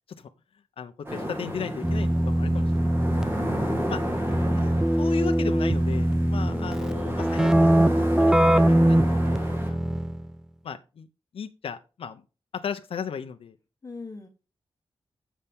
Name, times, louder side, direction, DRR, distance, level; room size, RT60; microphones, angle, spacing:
voice 1, 0.8-3.4 3.9-4.0 4.6-7.5 8.0-9.2 9.7-10.1 10.6-11.1 11.3-12.2 12.5-13.6, left 7 dB, 75° left, 7 dB, 0.8 m, -36 dB
sound 1, 1.1-9.7, equal, 25° right, 3.0 m, -33 dB
Keyboard (musical), 1.8-10.3, right 1 dB, 5° right, 0.5 m, -22 dB
voice 2, 3.3-3.9 6.3-6.7 13.8-14.3, left 4 dB, 35° left, 4 dB, 1.3 m, -40 dB
10.0 x 7.4 x 3.6 m, 0.31 s
wide cardioid pair, 120°, 10 cm